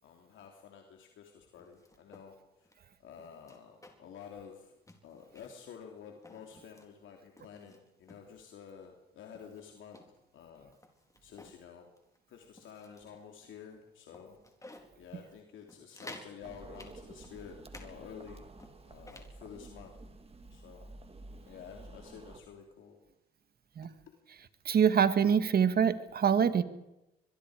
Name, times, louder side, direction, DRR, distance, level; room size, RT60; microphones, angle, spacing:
voice 1, 0.0-2.7 3.0-4.7 5.0-10.0 10.3-10.7 11.2-11.9 12.3-14.4 15.0-18.5 18.8-19.9 20.5-20.9 21.4-23.0, left 7 dB, 75° left, 2 dB, 3.0 m, -50 dB
sound 1, 1.6-2.3 2.6-2.8 3.2-4.2 4.4-4.6 4.9-5.6 6.1-6.9 7.4-8.3 8.8-8.9 9.3-11.6 12.0-12.2 12.6-13.2 13.6-13.7 14.1-14.9 15.3-15.4 15.7-16.3 16.7-17.9 18.2-19.3, left 2 dB, 15° left, 4.2 m, -53 dB
sound 2, 16.4-22.4, right 2 dB, 30° right, 2.8 m, -51 dB
voice 2, 24.7-26.6, right 7 dB, 50° right, 11 dB, 1.8 m, -25 dB
24.5 x 22.0 x 5.0 m, 0.90 s
cardioid pair, 90°, 20 cm